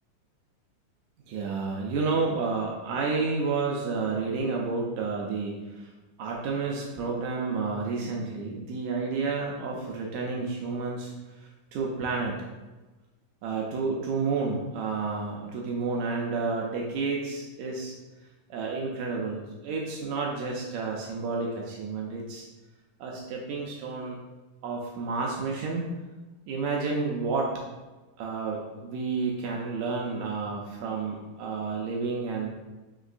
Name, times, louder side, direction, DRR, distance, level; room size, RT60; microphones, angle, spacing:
voice 1, 1.3-5.9 6.2-12.4 13.4-17.9 18.5-22.4 23.0-24.2 24.6-25.9 26.5-27.5 28.2-32.5, right 4 dB, 80° right, -2 dB, 1.7 m, -30 dB
6.1 x 2.9 x 2.4 m, 1.2 s
omnidirectional pair, 3.8 m